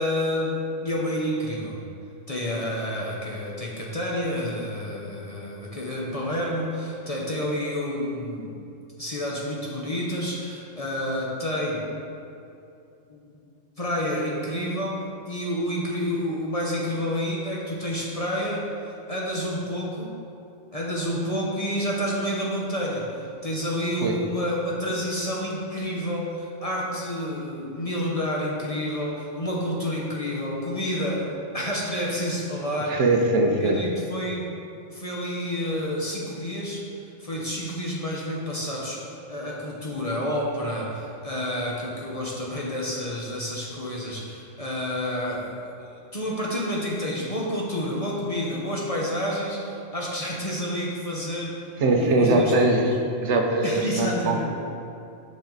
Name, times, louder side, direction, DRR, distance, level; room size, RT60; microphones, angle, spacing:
voice 1, 0.0-1.8 2.3-8.6 9.0-11.9 13.1-13.3 13.8-20.1 20.7-33.0 33.4-34.6 34.9-36.9 37.2-52.5 53.6-54.4, equal, 35° left, -4 dB, 0.8 m, -29 dB
voice 2, 32.8-33.8 51.8-52.9 53.2-54.4, right 2 dB, 70° right, 3 dB, 1.0 m, -21 dB
7.3 x 5.7 x 3.9 m, 2.6 s
omnidirectional pair, 1.3 m